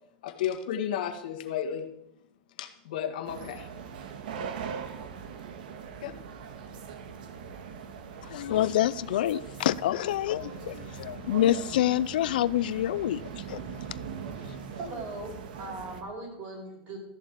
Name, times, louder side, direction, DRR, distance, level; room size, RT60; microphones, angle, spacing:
voice 1, 0.2-1.9 2.6-3.7 6.0-6.1, left 9 dB, 70° left, 1.7 m, -33 dB
sound 1, 3.2-16.0, right 6 dB, 75° right, 1.6 m, -41 dB
voice 2, 8.2-13.8, left 13 dB, 90° left, 0.5 m, -27 dB
voice 3, 14.8-17.0, right 2 dB, 35° right, 4.8 m, -39 dB
13.5 x 7.2 x 8.3 m
supercardioid pair, 170°, 5 cm